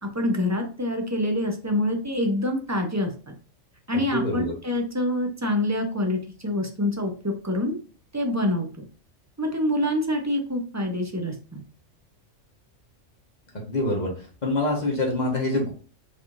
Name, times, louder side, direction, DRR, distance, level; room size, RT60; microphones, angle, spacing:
voice 1, 0.0-3.3 3.9-7.8 8.1-8.9 9.4-11.6, left 1 dB, 20° right, 3 dB, 0.5 m, -26 dB
voice 2, 4.1-4.5 13.5-14.1 14.4-15.7, left 2 dB, 35° left, -1 dB, 1.4 m, -25 dB
4.6 x 3.6 x 2.5 m, 0.38 s
omnidirectional pair, 1.3 m